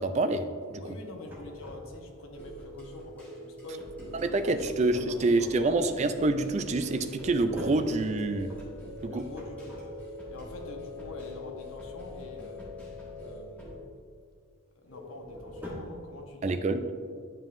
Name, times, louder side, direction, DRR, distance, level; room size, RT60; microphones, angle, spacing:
voice 1, 0.0-0.8 4.2-8.5 9.0-9.2 16.4-16.8, right 2 dB, 30° right, 9 dB, 0.3 m, -27 dB
voice 2, 0.8-3.9 4.3-4.5 4.8-5.7 9.0-9.8 10.3-12.6 13.2-13.8 14.8-16.6, left 2 dB, 80° left, 2 dB, 0.9 m, -45 dB
sound 1, 1.2-2.3 6.8-10.3 14.8-16.1, left 1 dB, 10° right, 1.1 m, -44 dB
sound 2, 2.3-13.8, left 1 dB, 5° left, 1.6 m, -44 dB
9.0 x 5.4 x 2.6 m, 2.1 s
head